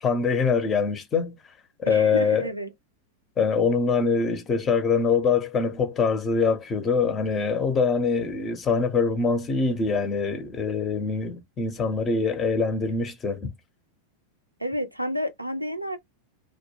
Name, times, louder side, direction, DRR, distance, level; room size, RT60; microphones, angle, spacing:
voice 1, 0.0-1.4 1.8-2.5 3.4-13.5, left 5 dB, 25° left, 0.5 m, -24 dB
voice 2, 1.9-2.7 14.6-16.0, equal, 85° right, 0.5 m, -30 dB
2.1 x 2.1 x 2.9 m
figure-of-eight pair, 90°, 0 cm